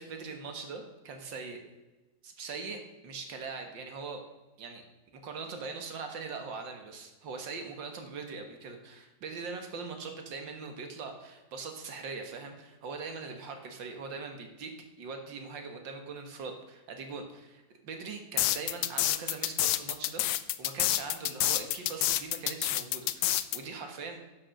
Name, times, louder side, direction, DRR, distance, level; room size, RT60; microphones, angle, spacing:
voice 1, 0.0-1.6 2.2-4.2 4.6-4.8 5.1-14.7 15.0-24.2, right 4 dB, 75° right, 5 dB, 2.2 m, -41 dB
sound 1, 18.4-23.6, left 14 dB, 75° left, 1.2 m, -28 dB
11.0 x 6.4 x 6.5 m, 1.1 s
omnidirectional pair, 2.0 m